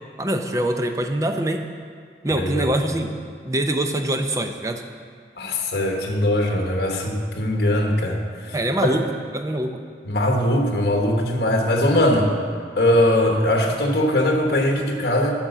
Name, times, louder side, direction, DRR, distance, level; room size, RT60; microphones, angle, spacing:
voice 1, 0.2-1.6 2.2-3.1 3.4-4.8 8.5-9.8, right 1 dB, 20° right, 5 dB, 0.5 m, -24 dB
voice 2, 2.4-2.7 5.4-8.2 8.5-8.6 10.0-12.3 12.8-15.3, left 1 dB, 60° left, 1 dB, 1.1 m, -20 dB
8.6 x 6.0 x 6.8 m, 2.1 s
head